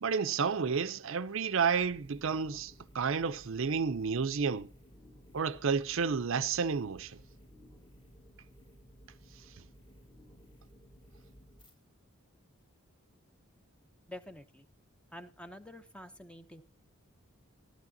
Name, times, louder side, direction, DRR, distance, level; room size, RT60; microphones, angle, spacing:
voice 1, 0.0-4.7 5.3-7.2, right 5 dB, 60° right, 0.5 m, -31 dB
sound 1, 1.7-11.7, equal, 20° left, 1.5 m, -57 dB
voice 2, 14.1-14.7 15.1-16.6, left 1 dB, 5° left, 0.7 m, -48 dB
13.5 x 11.5 x 2.7 m
head